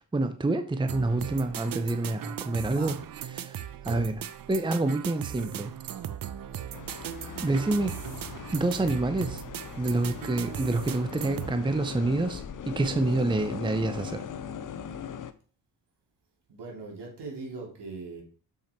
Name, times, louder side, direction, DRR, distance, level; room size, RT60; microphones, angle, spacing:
voice 1, 0.1-3.0 3.3-4.2 4.5-5.7 7.4-8.0 8.5-9.4 9.8-14.2, right 2 dB, 10° right, 0.7 m, -27 dB
sound 1, 0.9-11.5, right 10 dB, 55° right, 0.7 m, -38 dB
voice 2, 2.6-3.0 3.9-4.2 7.3-7.7 16.5-18.2, right 3 dB, 75° right, 3.3 m, -41 dB
sound 2, 6.7-15.3, left 8 dB, 50° left, 0.8 m, -40 dB
7.1 x 5.9 x 4.5 m
cardioid pair, 90°, 41 cm